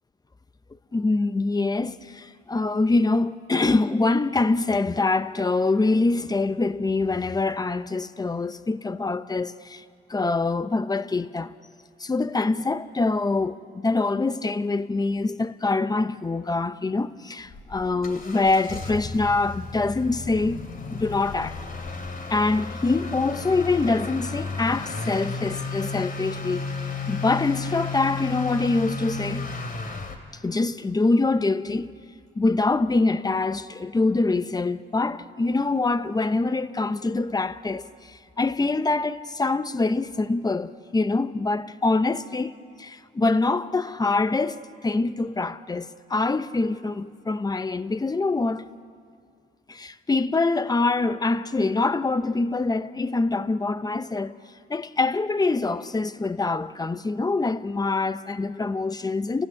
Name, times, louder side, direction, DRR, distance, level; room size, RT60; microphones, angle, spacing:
voice 1, 0.9-9.8 10.1-11.5 12.0-20.6 20.9-21.6 22.3-26.7 27.1-29.5 30.4-31.9 32.4-48.7 49.7-54.4 54.7-59.5, left 3 dB, 20° left, 0.8 m, -24 dB
Motor vehicle (road) / Accelerating revving vroom, 17.5-30.2, left 4 dB, 45° left, 2.8 m, -33 dB
29.5 x 15.5 x 9.8 m
cardioid pair, 90°, 20 cm